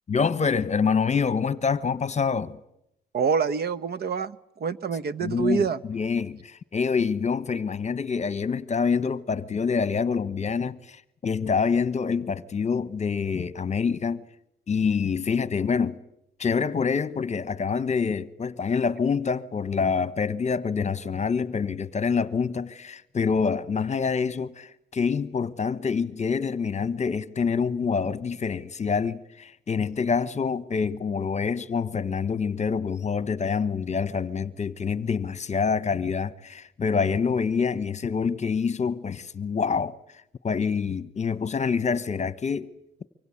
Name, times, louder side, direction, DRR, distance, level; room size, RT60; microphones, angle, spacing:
voice 1, 0.1-2.6 5.2-14.3 14.7-16.0 16.4-40.0 40.4-42.7, left 5 dB, 35° left, 1.1 m, -26 dB
voice 2, 3.1-5.8, right 6 dB, 55° right, 1.1 m, -26 dB
24.5 x 24.5 x 8.6 m
cardioid pair, 90°, 20 cm